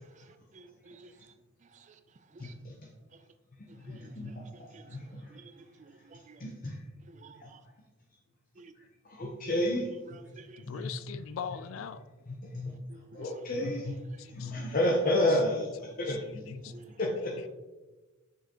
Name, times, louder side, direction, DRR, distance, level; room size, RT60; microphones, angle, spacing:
voice 1, 0.5-1.1 2.4-2.5 3.9-4.1 4.7-5.0 5.3-5.5 5.8-6.4 7.2-7.6 8.6-8.7 10.1-10.9 12.9-13.0 16.7-16.9, right 4 dB, 35° right, 0.4 m, -53 dB
voice 2, 2.4-2.7 3.7-4.4 4.9-5.3 6.4-6.8 7.4-7.5 9.1-9.9 10.6-10.9 12.3-12.8 13.1-13.9 14.3-16.7 17.0-17.5, left 1 dB, 40° left, 0.7 m, -31 dB
voice 3, 10.6-12.0 14.2-14.5 16.1-16.2 16.6-16.7, left 8 dB, 70° left, 0.3 m, -40 dB
6.6 x 5.5 x 2.9 m
head